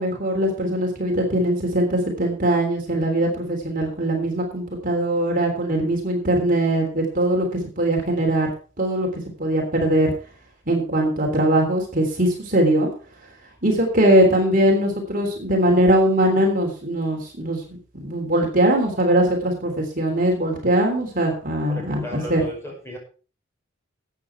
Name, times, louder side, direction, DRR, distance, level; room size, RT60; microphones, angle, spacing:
voice 1, 0.0-7.5 7.8-8.5 8.8-10.1 10.7-12.9 13.6-22.4, right 1 dB, 45° right, 1 dB, 3.5 m, -21 dB
voice 2, 21.7-23.0, equal, 15° left, 0 dB, 5.6 m, -35 dB
13.5 x 8.7 x 4.7 m, 0.37 s
head